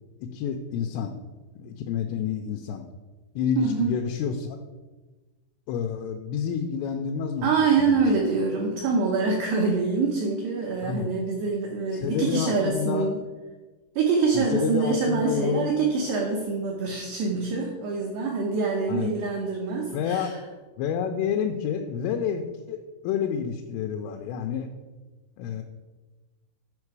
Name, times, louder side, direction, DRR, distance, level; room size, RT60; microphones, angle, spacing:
voice 1, 0.3-1.1 1.6-2.8 3.4-4.6 5.7-7.5 7.8-8.0 10.8-11.1 11.9-13.1 14.3-15.7 18.9-19.1 19.9-20.4 20.8-22.8 23.0-24.7 25.4-25.6, left 7 dB, 85° left, 4 dB, 3.0 m, -29 dB
voice 2, 3.6-4.0 7.4-13.2 14.0-20.3, right 4 dB, 80° right, -1 dB, 2.4 m, -25 dB
9.7 x 5.1 x 4.7 m, 1.2 s
omnidirectional pair, 6.0 m